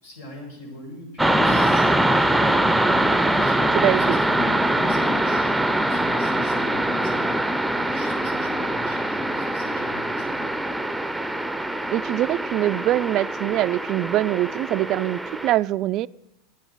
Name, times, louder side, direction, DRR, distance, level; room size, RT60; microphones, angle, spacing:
voice 1, 0.0-2.9 3.3-5.6 5.8-10.5, left 1 dB, 80° left, 0 dB, 6.6 m, -41 dB
sound 1, 1.2-15.5, right 1 dB, 5° right, 0.6 m, -23 dB
voice 2, 3.8-4.2 11.9-16.1, right 14 dB, 50° right, 18 dB, 0.3 m, -23 dB
10.5 x 9.2 x 8.3 m, 0.92 s
hypercardioid pair, 95°, 0 cm